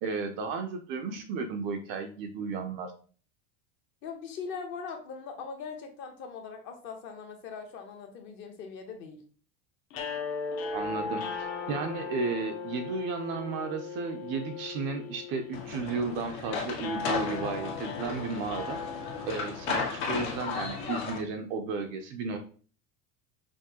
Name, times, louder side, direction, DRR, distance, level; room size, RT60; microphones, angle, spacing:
voice 1, 0.0-2.9 10.7-18.8 19.2-22.4, right 4 dB, 35° right, 5 dB, 0.4 m, -34 dB
voice 2, 4.0-9.2, left 5 dB, 35° left, 5 dB, 0.7 m, -41 dB
sound 1, 9.9-20.1, left 5 dB, 60° left, 0.9 m, -38 dB
sound 2, 15.5-21.2, left 5 dB, 85° left, 1.9 m, -35 dB
5.9 x 2.5 x 2.8 m, 0.40 s
cardioid pair, 180°, 35 cm